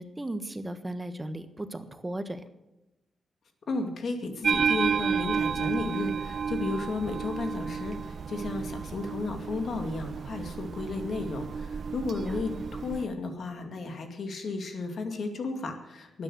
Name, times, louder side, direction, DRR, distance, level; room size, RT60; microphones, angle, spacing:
voice 1, 0.0-2.4 12.2-12.6, right 1 dB, 20° right, 9 dB, 1.3 m, -36 dB
voice 2, 3.7-16.2, left 3 dB, 65° left, 5 dB, 2.3 m, -33 dB
sound 1, 4.4-13.1, right 6 dB, 60° right, 0.6 m, -31 dB
12.5 x 9.8 x 7.8 m, 0.95 s
cardioid pair, 90°, 0 cm